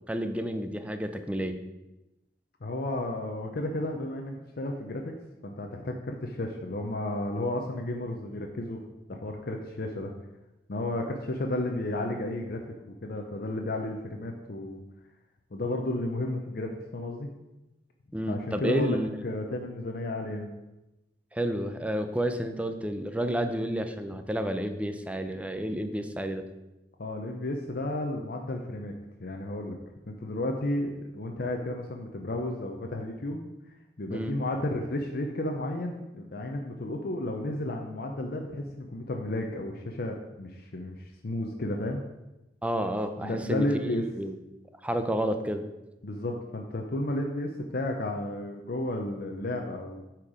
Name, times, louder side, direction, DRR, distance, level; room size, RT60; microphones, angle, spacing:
voice 1, 0.1-1.6 18.1-19.1 21.3-26.5 34.1-34.3 42.6-44.4 44.8-45.6, equal, 10° right, 8 dB, 0.5 m, -30 dB
voice 2, 2.6-5.1 5.4-8.8 9.1-10.1 10.7-12.6 13.0-14.8 15.5-17.3 18.3-20.5 27.0-28.9 29.2-29.8 30.1-33.5 34.0-42.0 43.2-44.0 46.0-50.0, left 1 dB, 60° left, 2 dB, 0.7 m, -32 dB
8.6 x 4.5 x 4.9 m, 0.98 s
head